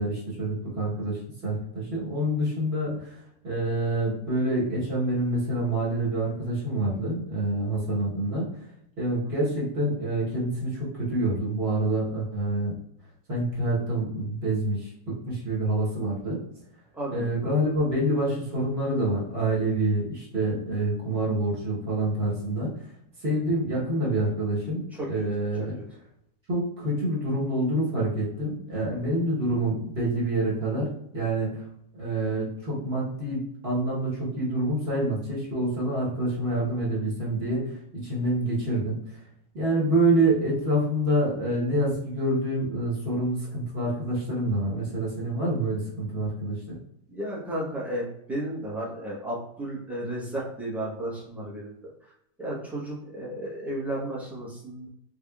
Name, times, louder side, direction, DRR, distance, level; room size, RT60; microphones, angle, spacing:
voice 1, 0.0-3.1 3.4-8.5 9.0-12.7 13.3-16.4 17.1-22.7 23.2-25.8 26.5-30.9 31.1-31.6 32.0-39.0 39.5-46.8, right 1 dB, 40° right, -6 dB, 1.3 m, -27 dB
voice 2, 17.0-17.5 25.0-25.3 47.1-51.9 52.4-54.9, right 1 dB, ahead, -6 dB, 0.6 m, -33 dB
3.6 x 3.4 x 2.3 m, 0.74 s
omnidirectional pair, 1.8 m